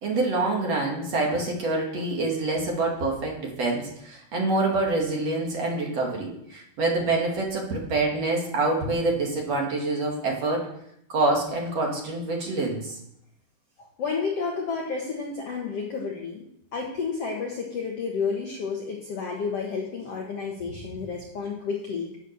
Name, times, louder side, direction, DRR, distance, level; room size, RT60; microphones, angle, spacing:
voice 1, 0.0-10.7 11.1-12.9, right 2 dB, 45° right, -1 dB, 3.0 m, -26 dB
voice 2, 13.8-16.4 16.7-22.2, left 5 dB, 55° left, -1 dB, 1.8 m, -31 dB
9.8 x 9.1 x 6.7 m, 0.76 s
omnidirectional pair, 4.4 m